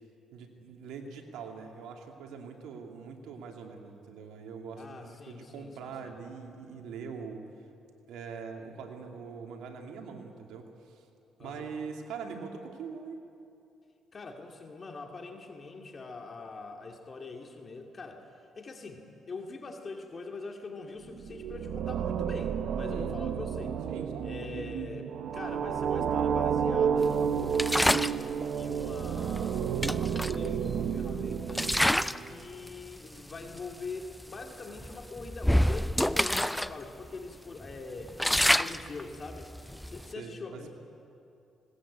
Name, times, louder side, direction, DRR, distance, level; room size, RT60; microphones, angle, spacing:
voice 1, 0.3-7.5 8.1-11.0 11.4-13.2 22.9-23.1 23.9-24.7 40.2-40.7, right 5 dB, 85° right, 3 dB, 2.4 m, -43 dB
voice 2, 4.7-6.1 11.4-11.7 14.1-23.9 24.2-31.7 32.2-39.5 39.9-40.7, left 3 dB, 40° left, 3 dB, 2.3 m, -43 dB
sound 1, 21.1-32.3, right 7 dB, 70° right, 1.0 m, -31 dB
sound 2, 27.5-28.2 29.4-29.5 29.8-31.0 31.5-32.3 32.6-32.9 33.6-33.7 34.0-34.2 34.8-36.7 37.0-37.1 37.6-40.1, equal, 5° left, 0.4 m, -27 dB
19.5 x 18.5 x 8.6 m, 2.7 s
cardioid pair, 90°, 0 cm